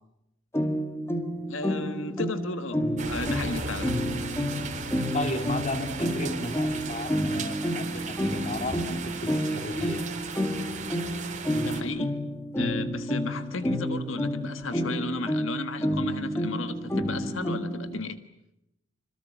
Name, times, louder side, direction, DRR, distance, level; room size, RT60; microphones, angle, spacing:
sound 1, 0.5-18.0, equal, 15° left, 2.1 m, -30 dB
voice 1, 1.5-2.8 3.1-4.0 11.6-12.2 12.6-18.3, left 3 dB, 80° left, 9 dB, 1.5 m, -34 dB
sound 2, 3.0-11.8, right 4 dB, 40° right, 3.9 m, -36 dB
voice 2, 5.1-10.1, left 1 dB, 35° left, 7 dB, 2.3 m, -34 dB
26.5 x 26.0 x 7.2 m, 0.84 s
head